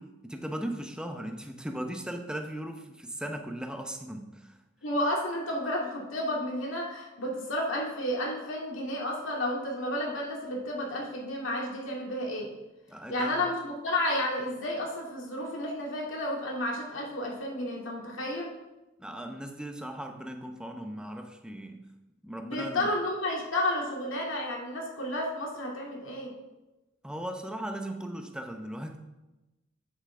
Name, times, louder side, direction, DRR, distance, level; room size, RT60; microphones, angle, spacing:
voice 1, 0.0-4.5 12.9-13.4 19.0-21.8 22.2-22.9 27.0-29.0, right 1 dB, 5° right, 5 dB, 0.7 m, -38 dB
voice 2, 4.8-12.5 13.1-18.5 22.4-26.3, left 1 dB, 80° left, -2 dB, 2.1 m, -31 dB
8.2 x 8.1 x 3.7 m, 1.0 s
head